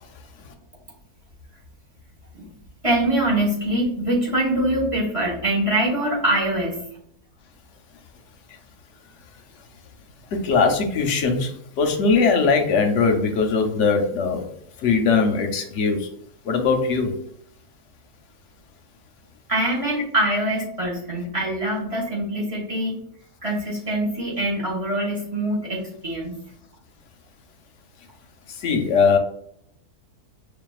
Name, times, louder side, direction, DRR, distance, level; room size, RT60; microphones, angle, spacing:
voice 1, 2.8-6.8 19.5-23.0 23.4-26.4, right 1 dB, 25° right, -4 dB, 0.9 m, -24 dB
voice 2, 10.4-11.5 11.8-14.4 14.8-16.0 16.5-17.1 28.6-29.2, left 5 dB, 65° left, 4 dB, 0.8 m, -20 dB
6.0 x 2.5 x 2.3 m, 0.70 s
omnidirectional pair, 1.6 m